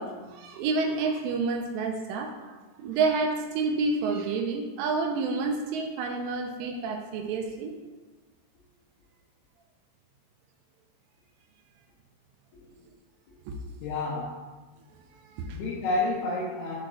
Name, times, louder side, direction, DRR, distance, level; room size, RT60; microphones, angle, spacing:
voice 1, 0.0-2.3 2.8-7.7 13.5-13.6 15.3-15.6, right 4 dB, 80° right, 3 dB, 3.0 m, -29 dB
voice 2, 13.8-14.4 15.5-16.8, left 2 dB, 75° left, -5 dB, 2.5 m, -30 dB
7.5 x 4.4 x 6.2 m, 1.3 s
omnidirectional pair, 5.9 m